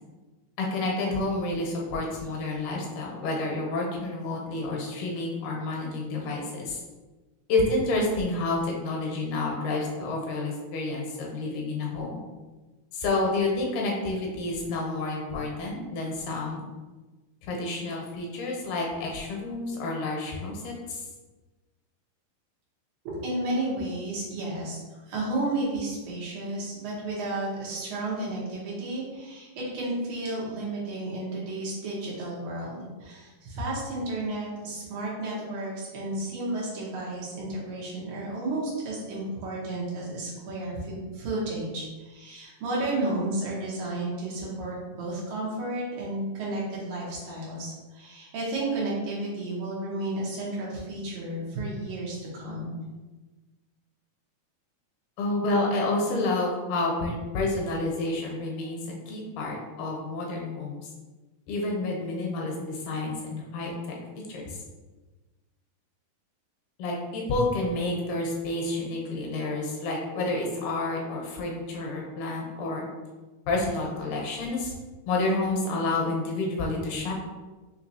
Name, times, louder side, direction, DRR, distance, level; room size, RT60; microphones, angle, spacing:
voice 1, 0.6-6.8 7.5-12.2 12.9-16.6 17.4-21.0 55.2-60.7 61.5-63.7 64.3-64.6 66.8-72.9 73.5-74.7 75.1-77.1, left 2 dB, 90° left, -1 dB, 2.4 m, -29 dB
voice 2, 23.0-52.7, right 2 dB, 75° right, -5 dB, 2.6 m, -32 dB
5.7 x 2.9 x 2.7 m, 1.2 s
omnidirectional pair, 3.6 m